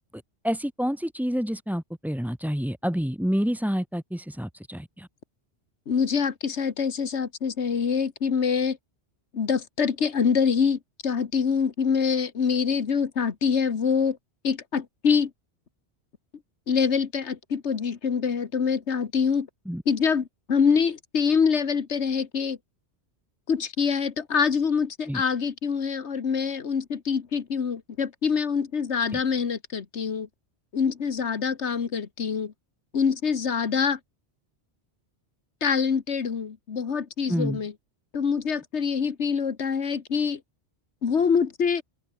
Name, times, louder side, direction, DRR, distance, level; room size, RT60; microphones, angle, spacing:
voice 1, 0.1-5.1 19.7-19.8 25.1-25.2 29.1-29.2 37.3-37.6, equal, ahead, 0.8 m, -28 dB
voice 2, 5.9-8.8 9.3-14.2 14.4-15.3 16.7-19.5 19.8-22.6 23.5-30.3 30.7-32.5 32.9-34.0 35.6-37.7 38.1-40.4 41.0-41.8, left 6 dB, 90° left, 1.7 m, -25 dB
omnidirectional pair, 1.1 m